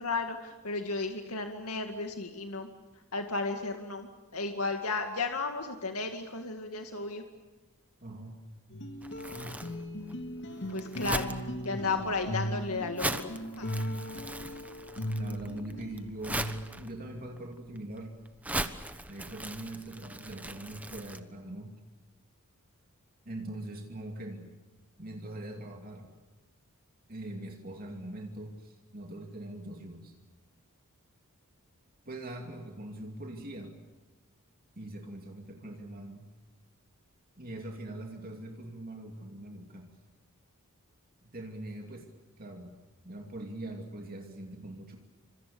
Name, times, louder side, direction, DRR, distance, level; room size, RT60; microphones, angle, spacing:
voice 1, 0.0-2.7 3.1-7.2 10.7-11.3 11.6-13.7, left 3 dB, 80° left, 4 dB, 2.2 m, -34 dB
voice 2, 8.0-8.4 9.3-9.6 15.2-16.5 16.8-18.2 19.1-21.8 23.3-24.5 25.0-26.1 27.1-30.1 32.1-33.8 34.8-36.3 37.4-39.9 41.2-42.1 42.4-42.7 43.0-45.0, right 1 dB, 40° right, 2 dB, 2.6 m, -42 dB
sound 1, 8.7-16.9, equal, 55° left, 2.6 m, -38 dB
Crumpling crinkling, 9.0-21.2, right 1 dB, 5° right, 1.2 m, -40 dB
29.0 x 26.0 x 7.1 m, 1.2 s
head